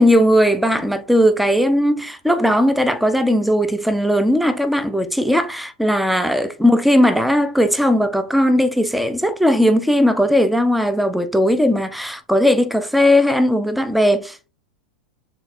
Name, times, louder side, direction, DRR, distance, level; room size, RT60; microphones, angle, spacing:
voice 1, 0.0-14.5, equal, ahead, 0.3 m, -17 dB
3.4 x 3.1 x 2.4 m
figure-of-eight pair, 90°, 5 cm